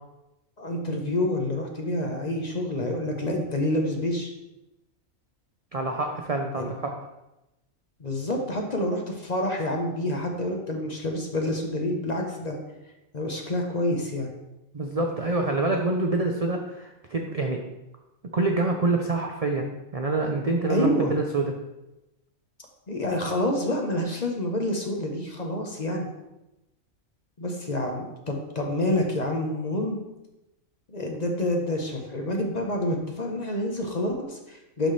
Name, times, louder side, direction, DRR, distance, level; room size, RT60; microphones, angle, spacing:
voice 1, 0.6-4.3 6.5-6.7 8.0-12.6 13.1-14.3 20.7-21.1 22.9-26.1 27.4-30.0 30.9-34.9, left 1 dB, 35° left, 2 dB, 0.8 m, -28 dB
voice 2, 5.7-6.9 14.7-17.6 18.3-21.5, right 2 dB, 50° right, 2 dB, 0.4 m, -26 dB
11.0 x 4.2 x 3.2 m, 0.95 s
omnidirectional pair, 1.4 m